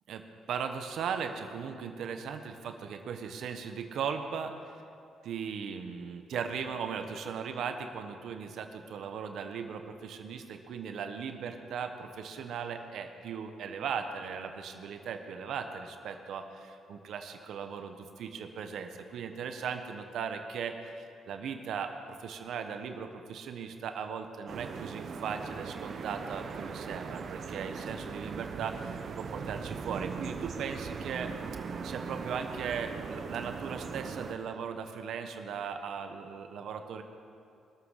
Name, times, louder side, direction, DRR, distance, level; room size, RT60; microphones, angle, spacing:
voice 1, 0.1-4.8 5.2-31.3 31.8-37.0, right 6 dB, 70° right, 6 dB, 1.1 m, -38 dB
sound 1, 24.5-34.3, right 5 dB, 50° right, 0.9 m, -39 dB
20.5 x 7.4 x 6.5 m, 2.5 s
cardioid pair, 90°, 0 cm